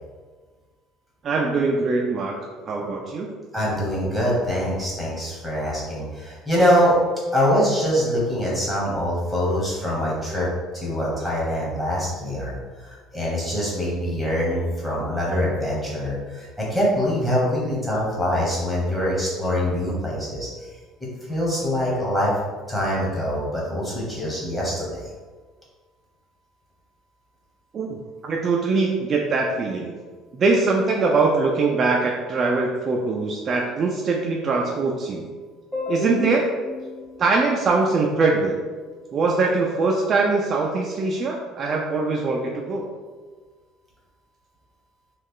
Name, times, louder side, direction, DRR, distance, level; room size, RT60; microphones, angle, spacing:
voice 1, 1.2-2.4 2.7-3.3 27.7-29.9 30.3-35.2 35.9-36.4 37.2-38.6 39.1-42.9, right 3 dB, 35° right, -1 dB, 0.3 m, -22 dB
voice 2, 3.5-7.0 7.3-10.5 10.7-20.5 21.3-22.3 22.7-25.1 35.7-36.3 36.6-37.2, equal, 5° left, -6 dB, 1.0 m, -24 dB
3.1 x 2.3 x 3.6 m, 1.4 s
cardioid pair, 145°, 0 cm